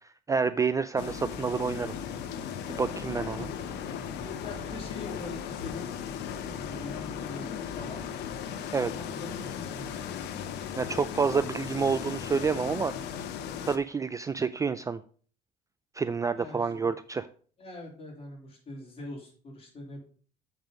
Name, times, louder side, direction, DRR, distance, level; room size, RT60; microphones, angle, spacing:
voice 1, 0.3-1.9 2.7-3.5 8.7-8.9 10.8-12.9 13.7-15.0 16.0-17.3, right 5 dB, 20° right, 12 dB, 0.4 m, -28 dB
sound 1, 1.0-13.8, left 8 dB, 80° left, 0.9 m, -37 dB
voice 2, 3.2-8.0 9.0-10.1 16.4-16.9 17.6-20.0, left 2 dB, 35° left, -1 dB, 3.5 m, -43 dB
7.6 x 5.4 x 5.1 m, 0.43 s
cardioid pair, 110°, 17 cm